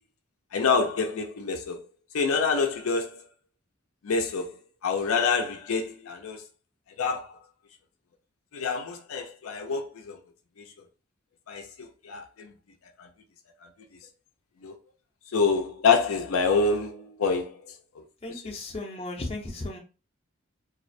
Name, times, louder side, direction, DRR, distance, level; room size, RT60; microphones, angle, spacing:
voice 1, 0.5-1.8 2.1-3.2 4.0-4.5 4.8-6.4 7.0-7.4 8.5-10.2 10.6-10.7 11.5-12.5 13.0-13.1 14.6-14.7 15.3-17.6 18.0-18.1, left 4 dB, 80° left, 0.5 m, -26 dB
voice 2, 18.2-19.8, left 2 dB, 25° left, 0.5 m, -35 dB
2.4 x 2.0 x 2.5 m
head